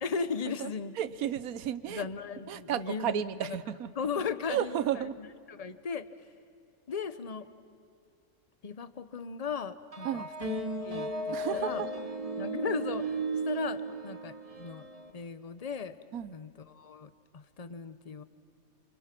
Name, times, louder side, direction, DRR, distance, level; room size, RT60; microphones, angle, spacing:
voice 1, 0.0-1.0 1.9-3.6 3.9-5.0 5.5-6.1 6.9-7.5 8.6-10.6 10.8-11.8 12.4-13.1 13.4-14.9 15.1-16.0 16.3-18.2, left 6 dB, 30° left, 13 dB, 0.8 m, -37 dB
voice 2, 1.0-2.1 2.5-3.9 4.5-5.2 10.0-10.3 11.3-11.9 16.1-16.3, right 10 dB, 75° right, 15 dB, 1.2 m, -33 dB
sound 1, 9.9-15.1, right 2 dB, 25° right, 1.5 m, -35 dB
29.5 x 27.0 x 6.0 m, 2.4 s
omnidirectional pair, 1.5 m